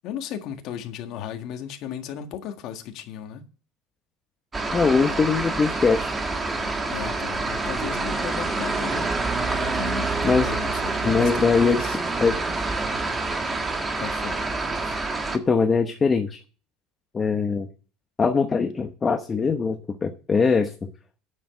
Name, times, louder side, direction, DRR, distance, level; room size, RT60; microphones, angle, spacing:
voice 1, 0.0-3.4 6.9-9.1 9.6-12.0 14.0-14.4 14.8-15.0, left 9 dB, 55° left, 1.7 m, -35 dB
sound 1, 4.5-15.4, right 3 dB, 15° right, 1.6 m, -27 dB
voice 2, 4.7-6.1 10.2-10.5 11.0-11.8 12.2-12.4 15.3-16.4 17.1-17.7 18.2-20.9, left 5 dB, 20° left, 1.0 m, -22 dB
9.8 x 7.2 x 7.7 m
cardioid pair, 145°, 0 cm